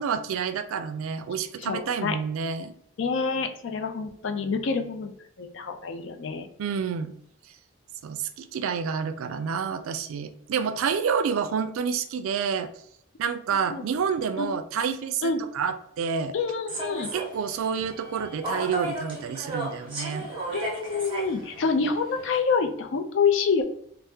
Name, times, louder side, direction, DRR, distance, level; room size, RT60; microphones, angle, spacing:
voice 1, 0.0-2.7 6.6-7.1 8.0-12.7 13.2-16.4 17.1-20.3, right 6 dB, 85° right, 10 dB, 0.3 m, -29 dB
voice 2, 1.6-2.2 3.0-5.1 5.4-6.5 13.7-13.8 14.4-14.5 15.2-15.4 16.3-17.1 20.5-23.6, left 5 dB, 60° left, 5 dB, 0.4 m, -27 dB
Human voice / Subway metro underground, 16.7-22.4, right 2 dB, 25° right, 0.7 m, -35 dB
2.8 x 2.0 x 3.4 m, 0.68 s
head